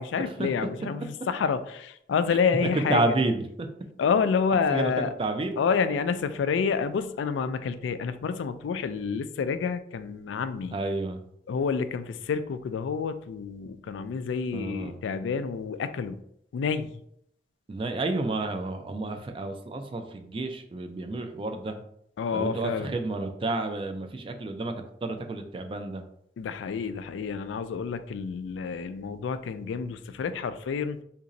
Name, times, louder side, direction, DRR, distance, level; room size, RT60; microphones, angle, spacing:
voice 1, 0.0-3.1 4.0-5.1 5.6-10.8 11.5-16.2 16.5-17.0 22.2-22.9 26.4-31.0, left 6 dB, 90° left, 11 dB, 0.3 m, -28 dB
voice 2, 2.7-3.7 4.7-5.6 10.7-11.2 14.5-15.0 17.7-21.8 22.3-24.7 25.0-26.0, right 2 dB, 30° right, 6 dB, 0.3 m, -30 dB
2.9 x 2.6 x 3.8 m, 0.71 s
head